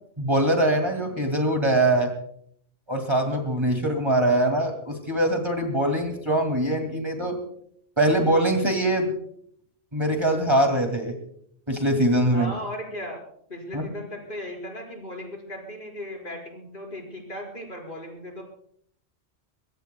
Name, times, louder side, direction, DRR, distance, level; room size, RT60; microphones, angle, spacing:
voice 1, 0.2-2.1 2.9-7.4 8.0-9.1 9.9-11.2 11.7-12.5 13.7-13.9, right 1 dB, 25° right, 3 dB, 2.5 m, -23 dB
voice 2, 12.3-13.2 13.5-18.4, left 1 dB, 50° left, 0 dB, 5.3 m, -36 dB
23.5 x 22.5 x 2.3 m, 0.64 s
omnidirectional pair, 1.1 m